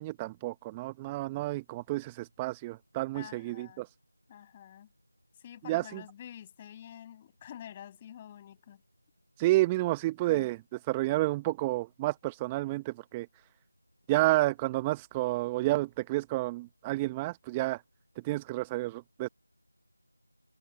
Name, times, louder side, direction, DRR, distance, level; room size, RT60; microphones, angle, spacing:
voice 1, 0.0-3.9 5.6-6.0 9.4-10.6 10.9-13.3 14.1-17.8 18.2-19.3, right 18 dB, 10° right, 0.8 m, -30 dB
voice 2, 3.1-3.8 4.3-4.9 5.4-8.8 10.3-10.5, left 10 dB, 15° left, 6.7 m, -48 dB
figure-of-eight pair, 170°, 0 cm